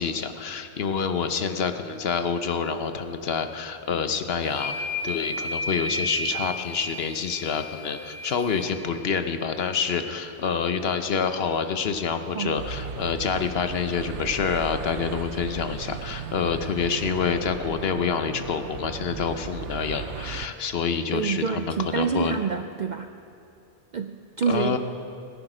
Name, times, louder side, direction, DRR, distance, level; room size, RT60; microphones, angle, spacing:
voice 1, 0.0-22.4 24.5-24.8, left 6 dB, 60° left, 8 dB, 1.0 m, -27 dB
sound 1, 4.5-8.8, left 1 dB, 75° left, 2.8 m, -33 dB
sound 2, 12.6-20.5, right 8 dB, 80° right, 0.9 m, -37 dB
voice 2, 21.1-23.1 23.9-24.8, right 6 dB, 60° right, 7 dB, 0.5 m, -27 dB
18.0 x 11.0 x 5.0 m, 2.6 s
omnidirectional pair, 1.2 m